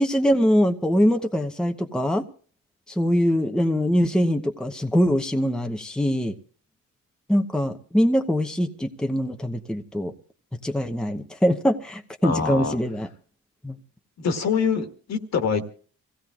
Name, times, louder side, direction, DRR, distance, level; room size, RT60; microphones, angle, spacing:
voice 1, 0.0-2.3 2.9-6.3 7.3-10.1 10.6-13.1 13.6-13.8, equal, 5° left, 0.9 m, -23 dB
voice 2, 12.2-12.8 14.2-15.6, left 6 dB, 60° left, 1.8 m, -25 dB
26.5 x 16.5 x 2.4 m
cardioid pair, 90°, 30 cm